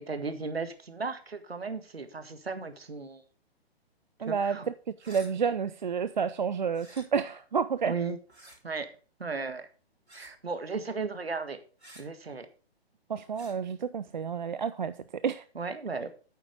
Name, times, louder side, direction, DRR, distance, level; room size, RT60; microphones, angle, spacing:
voice 1, 0.0-3.2 4.2-4.7 7.9-8.2 8.6-8.9 9.2-9.7 10.1-11.6 11.9-12.5 15.5-16.1, right 4 dB, 70° right, 1.8 m, -35 dB
voice 2, 4.2-4.6 5.0-7.9 13.1-14.9 15.2-15.4, right 6 dB, 45° right, 0.5 m, -30 dB
sound 1, 5.0-5.3 6.7-7.1 8.3-8.6 10.1-10.4 11.8-12.0 13.3-13.6, right 1 dB, 85° right, 4.1 m, -51 dB
8.9 x 7.8 x 5.2 m
figure-of-eight pair, 135°, 32 cm